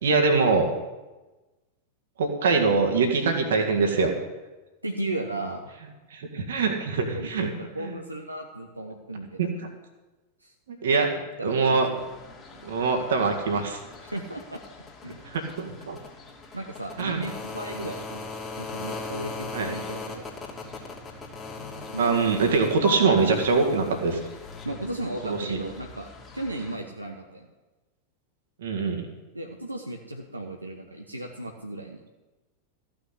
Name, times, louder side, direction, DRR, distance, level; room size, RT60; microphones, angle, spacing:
voice 1, 0.0-0.7 2.2-4.1 6.1-7.5 7.8-7.9 9.4-9.5 10.8-11.1 11.4-11.9 12.6-13.8 15.2-16.0 17.0-17.2 19.5-19.7 22.0-24.2 25.2-25.6 28.6-29.1, right 4 dB, 60° right, 3 dB, 1.9 m, -23 dB
voice 2, 4.8-5.7 7.1-9.5 10.4-10.5 11.0-12.0 14.0-14.6 15.0-15.2 16.5-20.2 21.9-23.2 24.6-26.1 26.3-27.5 29.3-32.0, right 1 dB, 85° right, 1 dB, 1.1 m, -35 dB
sound 1, 12.0-26.7, left 4 dB, 20° left, 2.9 m, -40 dB
14.5 x 6.2 x 8.3 m, 1.1 s
figure-of-eight pair, 90°, 0 cm